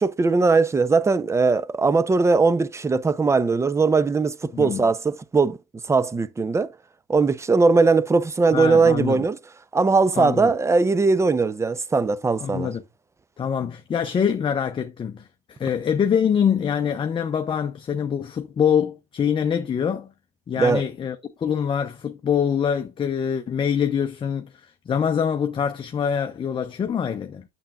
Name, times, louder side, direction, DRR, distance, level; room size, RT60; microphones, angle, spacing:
voice 1, 0.0-5.6 5.9-6.7 7.1-9.4 9.7-12.7 20.6-20.8, right 4 dB, 15° right, 0.6 m, -20 dB
voice 2, 4.5-4.8 8.5-9.2 10.2-10.5 12.4-12.8 13.4-20.1 20.5-27.4, left 7 dB, 30° left, 0.7 m, -24 dB
8.8 x 7.1 x 2.4 m
supercardioid pair, 90°, 18 cm